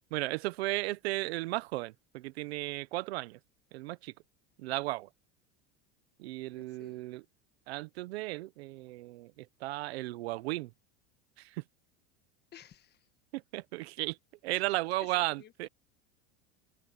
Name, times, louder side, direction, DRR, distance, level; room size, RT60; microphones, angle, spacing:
voice 1, 0.1-3.4 3.7-4.1 4.6-5.1 6.2-7.2 7.7-10.7 11.4-11.6 13.3-14.2 14.4-15.7, right 19 dB, 80° right, 1.2 m, -35 dB
voice 2, 6.6-7.0 12.5-13.1 14.5-15.5, left 10 dB, 30° left, 1.5 m, -55 dB
supercardioid pair, 115°, 31 cm